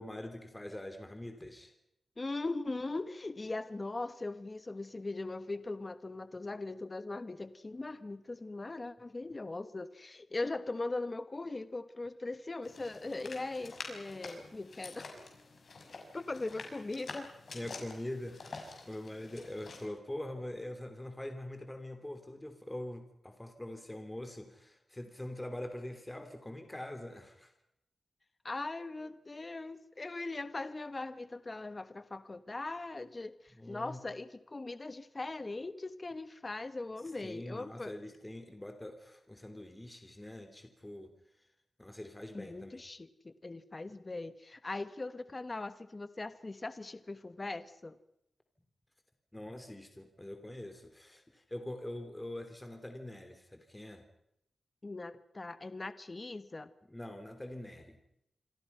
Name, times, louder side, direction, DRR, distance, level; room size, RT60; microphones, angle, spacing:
voice 1, 0.0-1.7 17.5-27.5 33.5-34.0 37.2-41.1 41.8-42.7 49.3-54.0 56.9-58.0, left 1 dB, 10° left, 6 dB, 3.1 m, -44 dB
voice 2, 2.2-15.1 16.1-17.3 28.4-37.9 42.3-48.0 54.8-56.7, left 2 dB, 25° left, 13 dB, 1.2 m, -40 dB
sound 1, 12.6-19.9, left 3 dB, 55° left, 6.1 m, -48 dB
27.5 x 26.0 x 5.7 m, 0.77 s
wide cardioid pair, 135°, 0 cm